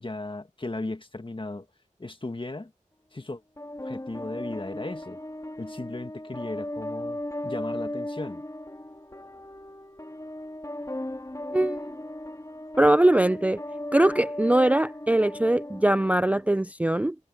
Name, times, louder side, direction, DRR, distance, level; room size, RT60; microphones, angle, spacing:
voice 1, 0.0-1.6 2.0-2.7 3.1-3.4 3.8-5.2 5.6-8.4, left 2 dB, 40° left, 1.8 m, -36 dB
sound 1, 3.6-16.6, left 1 dB, 25° left, 2.9 m, -37 dB
voice 2, 11.5-11.9 12.8-13.6 13.9-17.2, right 1 dB, 10° right, 0.3 m, -21 dB
wide cardioid pair, 55°, 13 cm